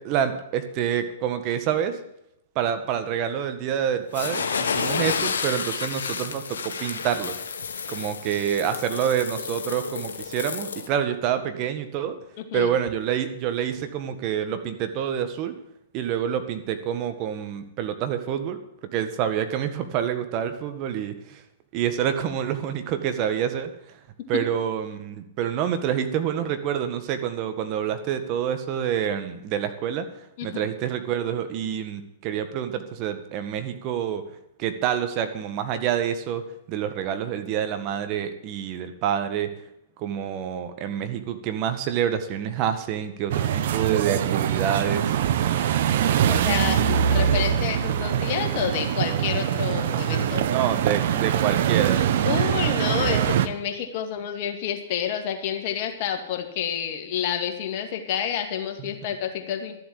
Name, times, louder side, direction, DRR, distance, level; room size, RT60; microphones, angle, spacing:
voice 1, 0.0-2.0 2.5-7.3 7.9-12.2 12.5-15.5 15.9-18.6 18.9-21.4 21.7-24.0 24.3-30.1 30.4-34.2 34.6-39.5 40.0-45.2 50.5-52.1, right 9 dB, 40° right, 9 dB, 1.7 m, -27 dB
sound 1, 4.1-10.9, left 6 dB, 75° left, 1.5 m, -30 dB
voice 2, 12.4-12.7 30.4-30.7 46.3-50.4 52.3-59.8, left 9 dB, 50° left, 4 dB, 2.3 m, -29 dB
sound 2, 43.3-53.5, right 9 dB, 60° right, 1.0 m, -23 dB
13.0 x 7.7 x 8.6 m, 0.82 s
hypercardioid pair, 115°, 0 cm